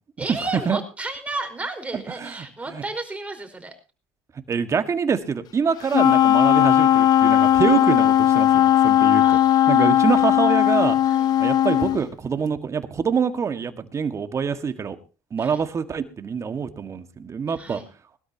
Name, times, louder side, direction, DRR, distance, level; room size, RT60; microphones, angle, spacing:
voice 1, 0.2-3.7 9.2-9.9 11.0-11.4 15.4-15.7 17.5-17.9, right 2 dB, 15° right, 5 dB, 4.9 m, -33 dB
voice 2, 1.9-2.3 2.7-2.8 4.5-9.4 9.7-11.0 11.4-15.0 15.3-17.8, right 6 dB, 35° right, 9 dB, 1.8 m, -25 dB
Wind instrument woodwind instrument, 5.9-12.0, left 11 dB, 50° left, 0.9 m, -17 dB
21.0 x 13.0 x 2.9 m, 0.31 s
supercardioid pair, 85°, 8 cm